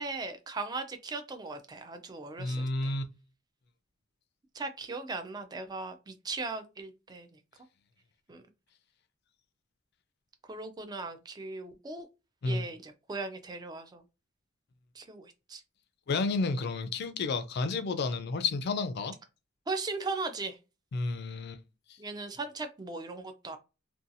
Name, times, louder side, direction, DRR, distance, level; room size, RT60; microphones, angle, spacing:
voice 1, 0.0-3.0 4.5-7.3 8.3-8.4 10.5-12.1 12.5-14.0 15.0-15.6 19.7-20.6 22.0-23.6, right 3 dB, 20° right, 0.3 m, -38 dB
voice 2, 2.4-3.0 12.4-12.7 16.1-19.1 20.9-21.6 21.9-22.0, left 3 dB, 50° left, 0.4 m, -31 dB
2.6 x 2.3 x 2.5 m
head